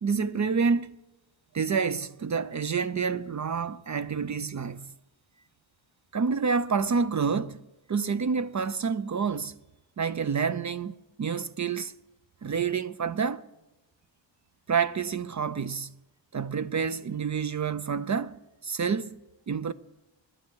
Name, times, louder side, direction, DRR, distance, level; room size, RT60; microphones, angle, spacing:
voice 1, 0.0-1.0 1.5-4.9 6.1-7.6 7.9-9.5 10.0-11.9 12.4-13.5 14.7-15.9 16.3-19.2 19.5-19.7, right 5 dB, 40° right, 0.5 m, -28 dB
21.0 x 9.7 x 4.6 m
wide cardioid pair, 120°, 45 cm